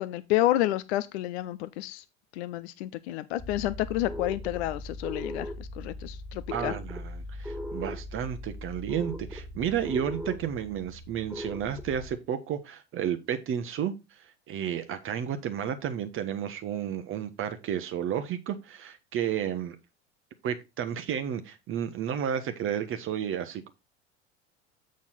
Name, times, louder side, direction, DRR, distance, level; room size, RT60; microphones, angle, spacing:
voice 1, 0.0-2.0 2.3-6.7, left 15 dB, 60° left, 0.5 m, -30 dB
sound 1, 3.4-12.2, left 1 dB, 5° right, 1.8 m, -39 dB
voice 2, 6.5-19.8 20.4-23.7, right 9 dB, 35° right, 0.9 m, -32 dB
7.1 x 6.3 x 4.1 m
figure-of-eight pair, 75°, 36 cm